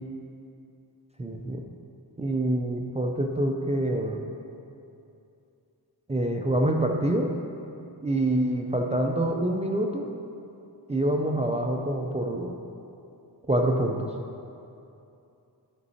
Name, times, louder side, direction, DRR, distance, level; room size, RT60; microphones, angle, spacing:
voice 1, 1.2-1.6 2.2-4.2 6.1-7.3 8.0-10.1 10.9-12.6 13.5-14.1, right 1 dB, 15° right, 1 dB, 0.4 m, -26 dB
11.0 x 5.3 x 4.1 m, 2.7 s
wide cardioid pair, 150°, 41 cm